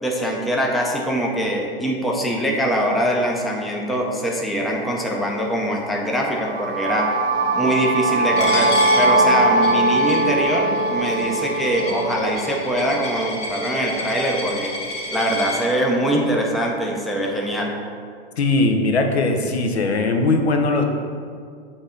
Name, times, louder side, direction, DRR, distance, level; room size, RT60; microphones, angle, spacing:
voice 1, 0.0-7.1 7.5-14.7 15.1-17.7, equal, ahead, -1 dB, 0.4 m, -23 dB
sound 1, 6.4-14.3, right 2 dB, 85° right, 0.9 m, -21 dB
Coin (dropping), 8.4-15.6, left 1 dB, 20° left, 1.0 m, -30 dB
voice 2, 18.4-20.8, left 3 dB, 90° left, 4 dB, 0.8 m, -19 dB
7.1 x 2.7 x 4.9 m, 2.1 s
hypercardioid pair, 115°, 31 cm